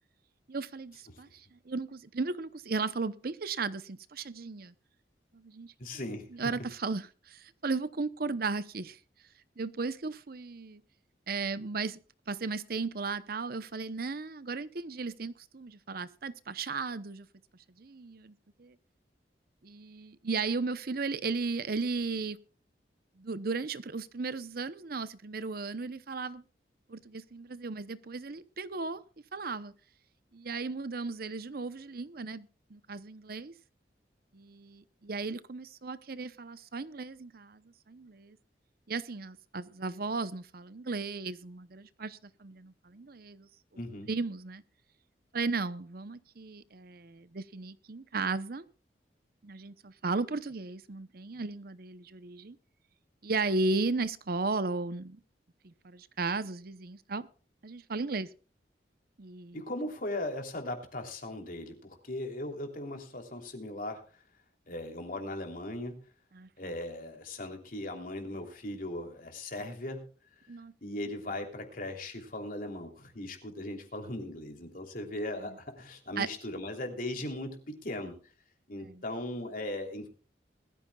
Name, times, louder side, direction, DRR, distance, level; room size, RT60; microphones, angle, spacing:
voice 1, 0.5-4.7 5.3-5.7 6.3-9.0 9.6-10.8 11.3-12.0 12.3-17.3 17.8-18.7 19.6-22.4 23.2-26.4 26.9-29.0 29.3-29.7 30.3-33.5 34.3-38.4 38.9-43.5 44.1-44.6 45.3-48.6 49.4-52.6 53.2-55.2 55.6-57.3 57.6-58.3 59.2-59.6 66.3-66.5 70.5-70.7 75.4-75.6 76.2-76.3 78.8-79.0, right 3 dB, 55° right, 0.8 m, -35 dB
voice 2, 5.8-6.2 43.7-44.1 59.5-64.0 64.7-66.0 66.6-70.0 70.8-78.2 78.7-80.1, left 1 dB, 50° left, 3.1 m, -38 dB
20.5 x 14.0 x 2.3 m
head